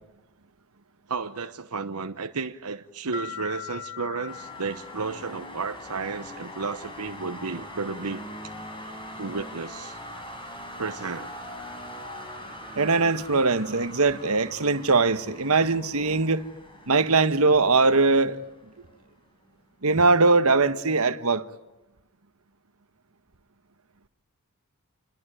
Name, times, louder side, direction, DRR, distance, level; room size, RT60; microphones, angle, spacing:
voice 1, 1.1-8.2 9.2-10.0 10.8-11.3, right 4 dB, 85° right, 1.1 m, -33 dB
sound 1, 3.1-5.8, left 7 dB, 25° right, 3.2 m, -40 dB
sound 2, 4.3-19.1, left 1 dB, 25° left, 5.1 m, -42 dB
voice 2, 12.7-16.5 16.9-18.4 19.8-21.5, right 3 dB, 70° right, 1.4 m, -21 dB
28.5 x 21.5 x 9.2 m
head